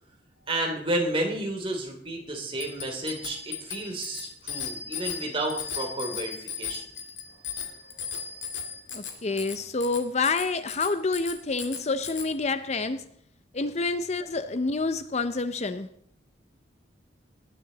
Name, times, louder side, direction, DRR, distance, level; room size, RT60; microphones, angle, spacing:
voice 1, 0.5-6.8, right 1 dB, 30° right, 1 dB, 2.9 m, -31 dB
Bicycle bell, 2.6-12.3, left 7 dB, 85° left, 2.1 m, -37 dB
voice 2, 8.9-13.1 13.5-15.9, left 3 dB, 35° left, 11 dB, 0.6 m, -28 dB
19.0 x 10.5 x 4.0 m, 0.66 s
head